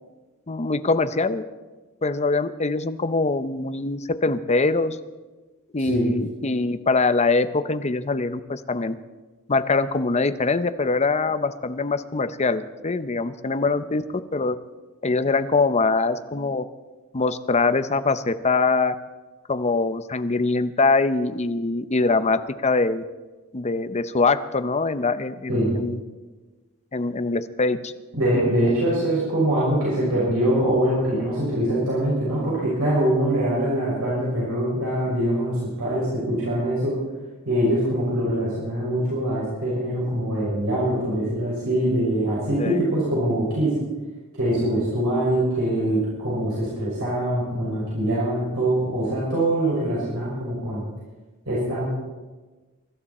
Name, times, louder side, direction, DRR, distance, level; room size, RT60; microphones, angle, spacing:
voice 1, 0.5-1.4 2.0-5.0 5.7-9.0 9.5-14.0 14.3-14.6 15.0-16.7 17.1-18.9 19.5-23.0 23.5-26.0 26.9-27.9 42.6-42.8, left 3 dB, 30° left, 11 dB, 0.7 m, -23 dB
voice 2, 25.5-25.8 28.1-37.0 37.4-43.7 44.3-50.8 51.5-51.9, right 1 dB, 70° right, -7 dB, 5.9 m, -23 dB
23.5 x 12.5 x 4.3 m, 1.2 s
head